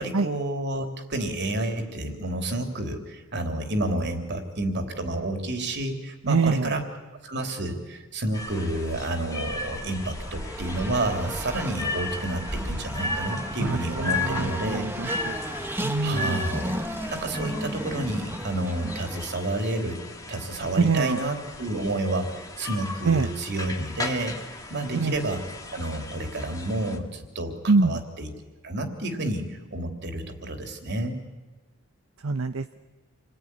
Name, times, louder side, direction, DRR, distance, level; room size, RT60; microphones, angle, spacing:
voice 1, 0.0-6.8 7.2-14.9 16.0-16.7 17.1-20.0 20.3-24.4 24.7-25.4 25.7-28.3 28.6-31.2, right 1 dB, 55° right, 4 dB, 3.3 m, -30 dB
voice 2, 6.3-6.7 13.6-15.4 15.8-16.4 20.8-21.2 23.0-23.3 24.9-25.1 27.7-28.0 32.2-32.8, right 4 dB, 70° right, 9 dB, 0.8 m, -24 dB
sound 1, 8.3-27.0, left 3 dB, 15° left, 2.2 m, -36 dB
Race car auto racing, 10.0-19.7, right 1 dB, 10° right, 1.4 m, -34 dB
28.5 x 20.5 x 9.8 m, 1.2 s
head